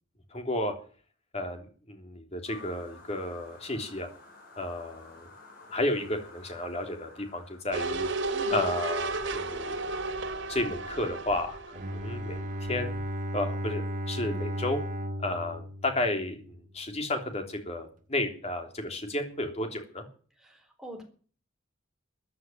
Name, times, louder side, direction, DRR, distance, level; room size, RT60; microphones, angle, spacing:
voice 1, 0.3-0.7 1.3-4.1 4.6-5.3 5.7-8.1 8.5-9.9 10.5-13.0 13.3-14.8 15.2-20.0, left 1 dB, 35° left, 4 dB, 3.3 m, -32 dB
sound 1, 2.4-7.6, left 3 dB, 50° left, 6.6 m, -51 dB
sound 2, 7.7-12.7 13.0-13.1, right 2 dB, 70° right, 2.8 m, -33 dB
voice 2, 8.3-8.6 20.4-21.0, equal, ahead, 2 dB, 3.9 m, -44 dB
Bowed string instrument, 11.7-16.7, equal, 40° right, 1.5 m, -35 dB
14.5 x 9.5 x 9.2 m, 0.43 s
head